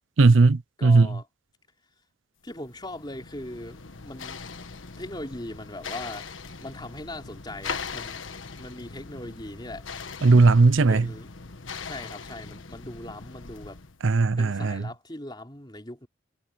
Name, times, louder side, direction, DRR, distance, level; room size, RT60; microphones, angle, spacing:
voice 1, 0.2-1.1 10.2-11.0 14.0-14.8, right 3 dB, 80° right, 0.6 m, -17 dB
voice 2, 0.8-1.3 2.4-4.4 5.0-6.3 6.6-8.2 8.6-9.9 10.7-11.3 11.8-13.8 14.4-16.1, left 1 dB, 20° left, 3.7 m, -39 dB
sound 1, 2.5-14.0, left 5 dB, 85° left, 1.4 m, -40 dB
head